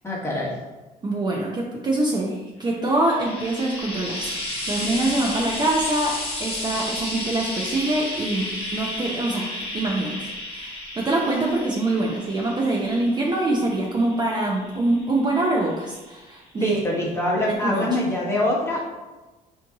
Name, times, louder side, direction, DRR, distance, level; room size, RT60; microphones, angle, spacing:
voice 1, 0.0-0.6 16.6-18.8, left 1 dB, 15° left, -5 dB, 1.2 m, -24 dB
voice 2, 1.0-8.5 8.7-9.5 9.7-16.8 17.5-17.8, right 2 dB, 25° right, -2 dB, 0.6 m, -24 dB
Frying (food), 2.7-16.1 17.1-17.2, left 1 dB, 35° left, 1.3 m, -33 dB
4.3 x 2.7 x 3.6 m, 1.1 s
cardioid pair, 110°, 17 cm